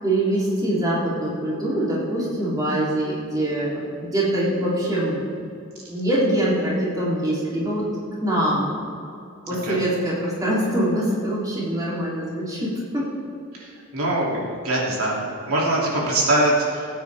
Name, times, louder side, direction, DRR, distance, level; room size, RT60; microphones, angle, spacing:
voice 1, 0.0-5.2 5.9-7.9 8.2-8.7 9.5-13.1, right 1 dB, 15° right, -7 dB, 3.2 m, -24 dB
voice 2, 9.5-9.8 13.5-16.9, right 1 dB, 75° right, -4 dB, 2.8 m, -23 dB
18.5 x 9.2 x 3.5 m, 2.6 s
head